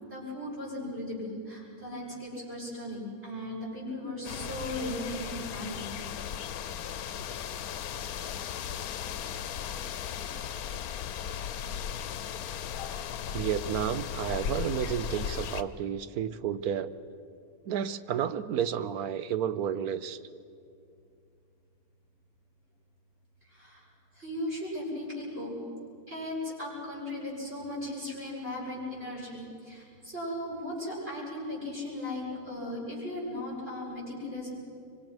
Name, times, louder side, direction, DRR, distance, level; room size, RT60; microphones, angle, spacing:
voice 1, 0.1-5.9 23.4-23.9 24.1-25.5 26.1-34.5, left 1 dB, 45° right, -7 dB, 8.3 m, -37 dB
sound 1, 4.2-15.6, left 9 dB, 75° left, 1.2 m, -36 dB
voice 2, 13.3-16.9 17.6-20.2, right 9 dB, 80° right, 13 dB, 1.3 m, -31 dB
25.0 x 24.5 x 6.1 m, 2.4 s
omnidirectional pair, 1.6 m